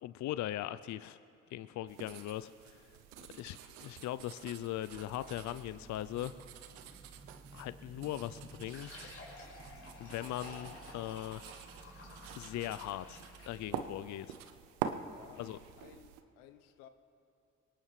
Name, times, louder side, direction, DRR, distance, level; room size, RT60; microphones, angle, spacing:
voice 1, 0.0-1.2 1.5-2.9 3.3-6.4 7.5-9.1 10.0-11.5 12.3-14.4 15.4-15.6, left 13 dB, 60° left, 14 dB, 0.5 m, -40 dB
sound 1, 1.9-16.2, right 8 dB, 90° right, 0.6 m, -47 dB
sound 2, 4.9-14.0, right 3 dB, 40° right, 2.0 m, -56 dB
Fill (with liquid), 8.6-13.7, left 2 dB, 45° left, 4.8 m, -52 dB
voice 2, 15.0-16.9, left 10 dB, 90° left, 10 dB, 0.8 m, -57 dB
22.0 x 18.5 x 3.2 m, 2.6 s
hypercardioid pair, 50°, 32 cm